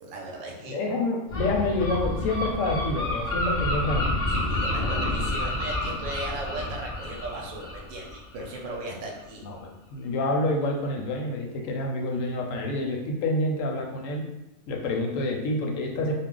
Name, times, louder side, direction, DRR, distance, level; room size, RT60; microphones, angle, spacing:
voice 1, 0.0-0.8 4.3-9.4, right 2 dB, 70° right, 0 dB, 0.9 m, -37 dB
voice 2, 0.7-4.1 9.4-14.2 14.7-16.1, left 2 dB, 70° left, 1 dB, 0.9 m, -28 dB
Gull seagull, 1.3-8.8, left 1 dB, 35° left, 0.7 m, -29 dB
2.5 x 2.0 x 3.7 m, 0.91 s
omnidirectional pair, 1.5 m